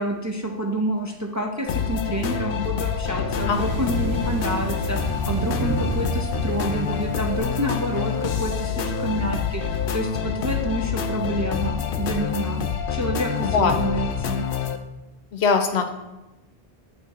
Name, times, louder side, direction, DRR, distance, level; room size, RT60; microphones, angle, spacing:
voice 1, 0.0-9.6 9.9-12.6 12.9-14.4, equal, 25° right, 1 dB, 0.4 m, -28 dB
sound 1, 1.7-14.8, left 7 dB, 65° left, 0.7 m, -27 dB
sound 2, 3.5-10.0, right 5 dB, 85° right, 0.9 m, -32 dB
voice 2, 15.3-15.9, left 5 dB, 90° left, 7 dB, 1.0 m, -20 dB
8.6 x 3.2 x 4.1 m, 0.99 s
omnidirectional pair, 1.1 m